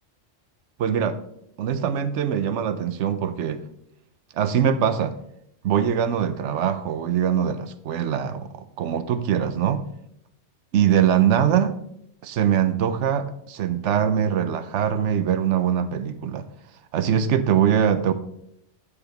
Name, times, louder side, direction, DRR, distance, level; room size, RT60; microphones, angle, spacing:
voice 1, 0.8-1.2 1.6-3.6 4.4-5.2 5.6-9.9 10.7-11.7 12.2-16.5 16.9-18.1, right 9 dB, 80° right, 11 dB, 1.0 m, -22 dB
7.1 x 7.0 x 4.0 m, 0.74 s
omnidirectional pair, 1.2 m